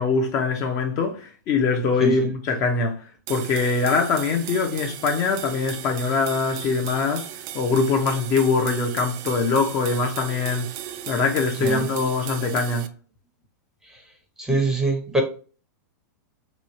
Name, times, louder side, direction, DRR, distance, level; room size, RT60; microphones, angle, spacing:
voice 1, 0.0-7.3 7.5-10.7 11.1-12.9, left 4 dB, 35° left, 0.6 m, -23 dB
voice 2, 2.0-2.3 11.6-11.9 14.4-15.2, right 2 dB, 5° right, 0.7 m, -23 dB
sound 1, 3.3-12.9, right 11 dB, 40° right, 0.4 m, -36 dB
3.0 x 2.3 x 4.1 m
supercardioid pair, 145°, 10 cm